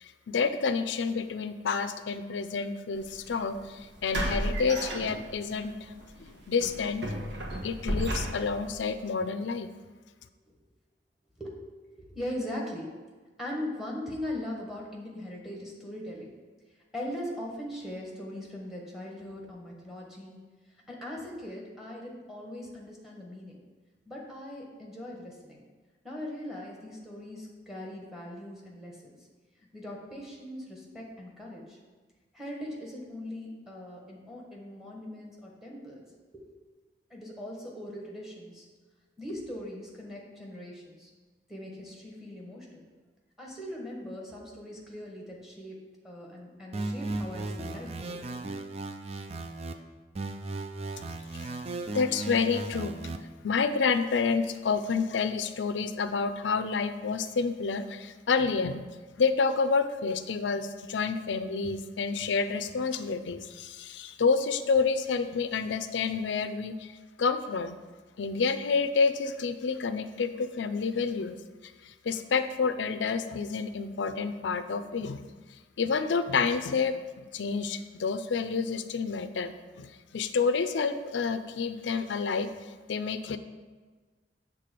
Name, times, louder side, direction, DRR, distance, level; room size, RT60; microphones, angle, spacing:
voice 1, 0.0-5.9 6.3-7.2 7.6-9.7 51.4-51.5 51.9-52.9 53.4-58.9 59.2-66.9 67.2-67.8 68.2-71.4 71.8-75.2 75.8-79.9 80.1-82.5 82.9-83.4, left 5 dB, 75° left, 11 dB, 0.5 m, -29 dB
sound 1, 3.0-3.2 4.1-5.6 6.0-6.2 6.6-8.7, equal, 75° right, 1.4 m, -32 dB
voice 2, 12.1-12.9 13.4-16.3 16.9-20.4 20.9-23.6 24.0-25.6 26.0-29.2 29.7-31.8 32.3-36.0 36.3-36.4 37.1-38.7 39.2-41.1 41.5-42.8 43.4-48.2, left 1 dB, ahead, -2 dB, 1.4 m, -40 dB
sound 2, 46.7-49.7 50.1-53.2, right 2 dB, 35° right, 0.4 m, -36 dB
7.6 x 3.7 x 6.6 m, 1.4 s
head